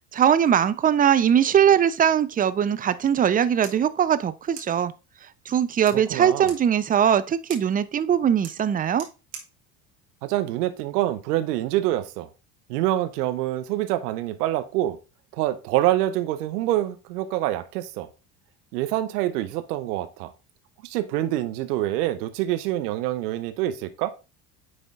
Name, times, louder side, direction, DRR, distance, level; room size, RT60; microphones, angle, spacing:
voice 1, 0.1-4.9 5.5-9.1, right 9 dB, 20° right, 0.4 m, -21 dB
sound 1, 3.6-11.2, right 6 dB, 90° right, 1.6 m, -48 dB
voice 2, 5.9-6.5 10.2-12.3 12.7-15.0 15.3-18.1 18.7-20.3 20.8-24.1, right 14 dB, 70° right, 0.9 m, -26 dB
9.5 x 3.5 x 3.6 m
hypercardioid pair, 65°, 48 cm